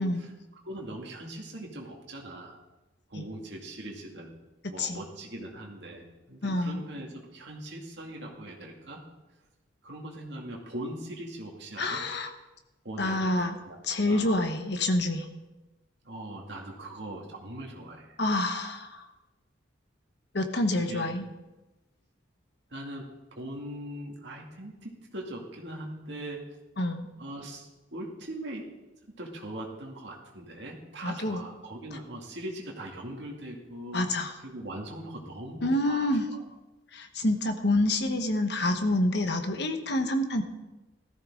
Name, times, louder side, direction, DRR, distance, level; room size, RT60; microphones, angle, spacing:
voice 1, 0.0-2.6 3.1-4.3 4.7-9.0 9.8-12.0 12.8-13.3 13.7-14.3 16.0-18.2 20.7-21.1 22.7-26.4 27.2-28.7 29.2-36.1 36.3-36.4, right 1 dB, 60° right, 0 dB, 2.3 m, -41 dB
voice 2, 6.4-6.8 11.8-12.3 13.0-13.6 13.8-15.3 18.2-19.1 20.3-21.3 26.8-27.1 31.0-31.4 33.9-34.3 35.6-36.3 36.9-40.4, left 1 dB, 60° left, 6 dB, 1.2 m, -27 dB
16.0 x 14.0 x 3.8 m, 1.1 s
head